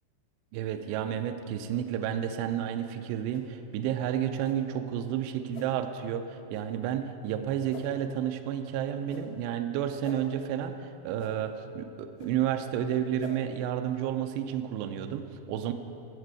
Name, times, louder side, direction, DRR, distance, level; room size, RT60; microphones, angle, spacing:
voice 1, 0.5-15.7, right 10 dB, 85° right, 7 dB, 2.5 m, -31 dB
sound 1, 3.3-3.5 4.4-4.6 5.5-5.7 6.5-6.6 7.7-7.9 9.1-9.2 10.0-10.2 11.2-11.3 12.2-12.3 13.2-13.3, left 6 dB, 75° left, 2.1 m, -45 dB
16.5 x 6.6 x 4.7 m, 2.7 s
omnidirectional pair, 5.3 m